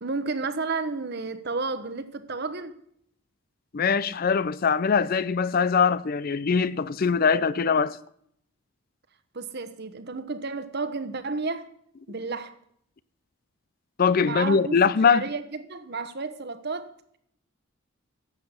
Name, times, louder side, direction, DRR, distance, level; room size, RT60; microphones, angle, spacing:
voice 1, 0.0-2.8 9.3-11.7 12.1-12.6 14.2-16.9, right 3 dB, 45° right, 1.0 m, -32 dB
voice 2, 3.7-8.0 14.0-15.2, left 5 dB, 40° left, 0.4 m, -22 dB
11.5 x 7.8 x 8.3 m
head